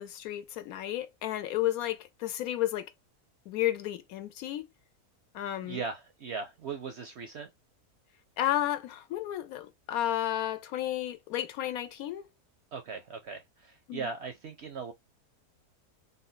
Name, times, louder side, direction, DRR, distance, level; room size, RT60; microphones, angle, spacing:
voice 1, 0.0-2.9 3.5-4.7 5.3-5.8 8.4-12.3 13.9-14.0, left 13 dB, 75° left, 1.0 m, -32 dB
voice 2, 5.6-7.5 12.7-14.9, right 5 dB, 65° right, 0.7 m, -38 dB
3.4 x 2.2 x 3.8 m
omnidirectional pair, 1.6 m